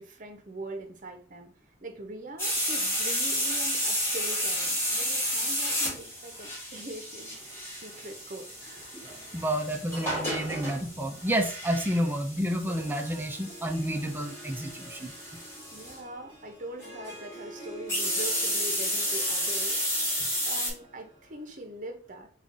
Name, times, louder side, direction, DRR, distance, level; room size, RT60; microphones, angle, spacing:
voice 1, 0.0-1.5 1.8-7.4 7.8-8.9 15.7-22.3, right 1 dB, 40° right, 4 dB, 0.7 m, -42 dB
sound 1, 2.4-16.0 17.9-20.7, equal, 10° left, 1.7 m, -31 dB
voice 2, 8.9-15.1, right 1 dB, 10° right, 4 dB, 0.4 m, -30 dB
Harp, 12.5-21.5, equal, 30° left, 1.7 m, -48 dB
3.7 x 2.4 x 3.7 m, 0.44 s
head